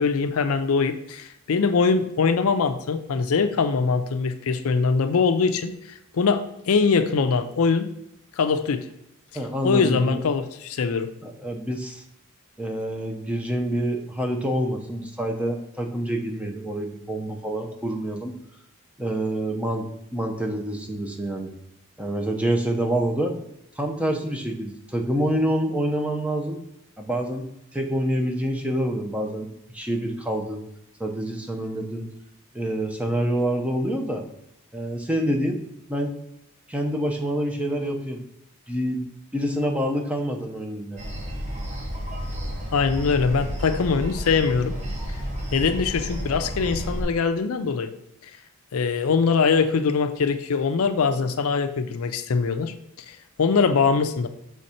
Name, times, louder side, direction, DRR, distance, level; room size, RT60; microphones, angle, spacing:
voice 1, 0.0-5.7 6.1-7.9 8.4-8.9 9.6-11.1 42.7-44.8 45.5-47.9 48.7-52.7 53.1-54.3, left 5 dB, 70° left, 9 dB, 0.5 m, -22 dB
voice 2, 9.3-10.2 11.2-12.0 12.6-18.4 19.0-19.8 20.1-21.5 22.0-23.3 23.8-26.6 27.0-27.5 27.7-29.5 29.7-30.6 31.0-32.1 32.5-34.2 34.7-35.6 35.9-36.1 36.7-38.2 38.7-39.0 39.3-41.0, right 1 dB, 5° right, 2 dB, 0.6 m, -27 dB
sound 1, 41.0-47.0, equal, 30° right, 1.1 m, -31 dB
6.5 x 3.5 x 4.2 m, 0.81 s
head